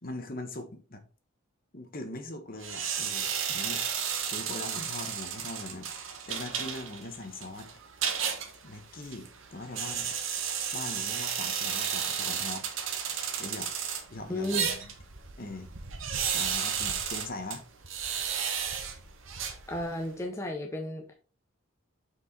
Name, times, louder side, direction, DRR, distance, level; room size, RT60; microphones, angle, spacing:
voice 1, 0.0-1.0 1.7-3.8 4.2-7.7 8.6-10.4 10.7-12.6 13.4-13.7 14.1-14.9 15.4-15.7 16.2-17.6, left 2 dB, 40° left, 1.1 m, -41 dB
sound 1, 2.6-20.1, right 7 dB, 70° right, 1.2 m, -33 dB
voice 2, 14.3-14.7 19.7-21.1, left 1 dB, 15° left, 0.7 m, -33 dB
6.3 x 4.9 x 4.1 m
head